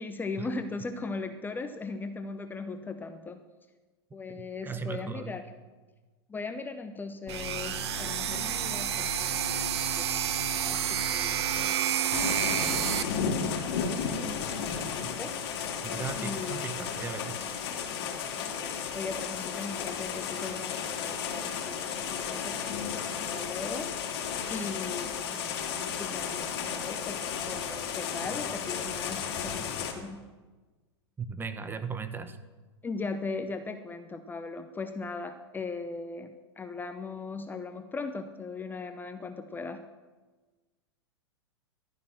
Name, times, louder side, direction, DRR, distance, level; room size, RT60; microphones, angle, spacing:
voice 1, 0.0-3.4 4.1-5.5 6.3-10.1 10.5-13.4 14.6-15.3 16.2-16.7 18.5-23.9 24.5-25.6 26.0-30.3 32.8-39.8, left 4 dB, 15° left, 8 dB, 0.8 m, -39 dB
voice 2, 4.3-5.3 15.0-15.2 15.8-17.5 31.2-32.4, right 5 dB, 15° right, 10 dB, 1.1 m, -37 dB
sound 1, 7.3-11.7, left 4 dB, 30° left, 1.9 m, -42 dB
sound 2, 7.3-13.0, right 10 dB, 70° right, 1.2 m, -29 dB
sound 3, 12.1-29.9, left 7 dB, 60° left, 3.1 m, -33 dB
14.5 x 12.0 x 6.2 m, 1.3 s
hypercardioid pair, 110°, 14 cm